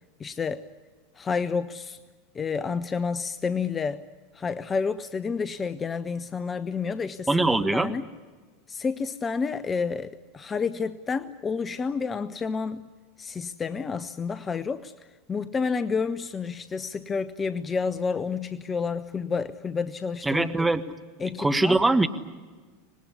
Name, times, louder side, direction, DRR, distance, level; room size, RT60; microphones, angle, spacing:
voice 1, 0.2-0.6 1.2-2.0 2.3-4.0 4.3-7.3 7.7-8.1 8.7-12.9 13.2-14.9 15.3-20.7 21.2-21.8, left 5 dB, 20° left, 14 dB, 0.8 m, -29 dB
voice 2, 7.3-7.9 20.2-20.8 21.4-22.1, right 2 dB, 10° right, 8 dB, 1.5 m, -22 dB
25.0 x 20.0 x 9.7 m, 1.4 s
figure-of-eight pair, 80°, 0 cm